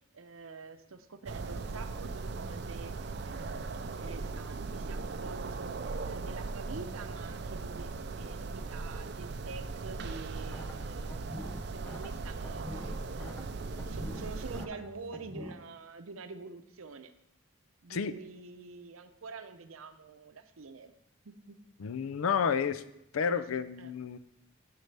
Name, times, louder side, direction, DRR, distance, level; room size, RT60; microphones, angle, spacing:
voice 1, 0.1-11.3 11.6-17.1 17.8-20.9 21.2-21.6 23.2-23.4 23.8-23.9, right 4 dB, 85° right, 9 dB, 0.7 m, -47 dB
sound 1, 1.3-14.7, right 3 dB, 55° right, 0.4 m, -38 dB
sound 2, 10.3-15.5, left 1 dB, 10° left, 0.6 m, -47 dB
voice 2, 21.8-22.8 23.1-24.2, left 6 dB, 85° left, 14 dB, 0.4 m, -30 dB
10.5 x 6.6 x 3.4 m, 0.84 s
head